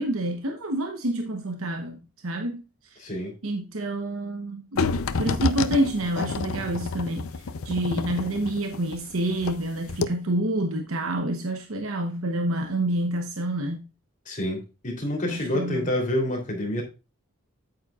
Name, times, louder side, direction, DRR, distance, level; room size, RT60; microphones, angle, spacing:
voice 1, 0.0-3.1 3.4-4.9 5.2-13.9 15.3-15.9, right 1 dB, 70° right, 1.0 m, -28 dB
voice 2, 3.0-3.3 14.2-16.8, left 1 dB, 35° left, 3.2 m, -28 dB
sound 1, 4.8-9.6 9.9-10.1, left 4 dB, 75° left, 0.6 m, -29 dB
8.8 x 8.7 x 2.4 m
head